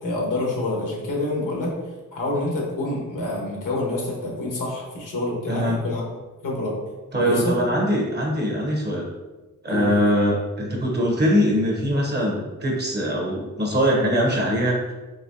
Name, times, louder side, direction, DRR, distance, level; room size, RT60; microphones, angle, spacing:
voice 1, 0.0-1.7 2.1-6.0 6.4-6.7 7.1-7.5 9.7-10.0, left 2 dB, 90° left, -3 dB, 1.2 m, -27 dB
voice 2, 5.5-5.8 7.1-9.1 9.6-14.9, equal, 35° right, -1 dB, 0.7 m, -22 dB
4.1 x 3.0 x 2.6 m, 1.2 s
wide cardioid pair, 120°, 31 cm